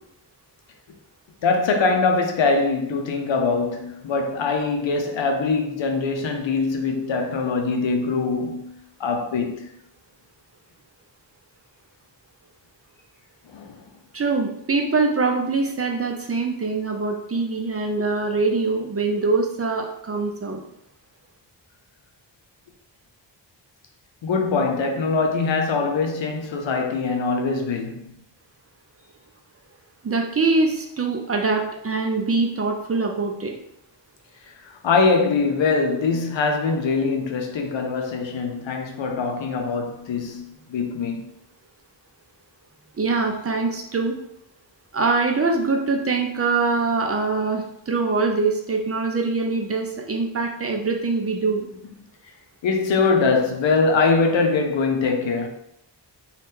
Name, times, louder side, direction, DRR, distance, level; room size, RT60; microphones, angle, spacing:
voice 1, 1.4-8.7 9.0-9.7 13.5-13.8 24.2-28.1 34.4-41.3 52.6-55.5, left 4 dB, 80° left, 0.6 m, -23 dB
voice 2, 14.1-20.6 30.0-33.5 43.0-44.1 44.9-51.7, right 3 dB, 35° right, 0.5 m, -23 dB
2.7 x 2.4 x 3.5 m
wide cardioid pair, 85°, 44 cm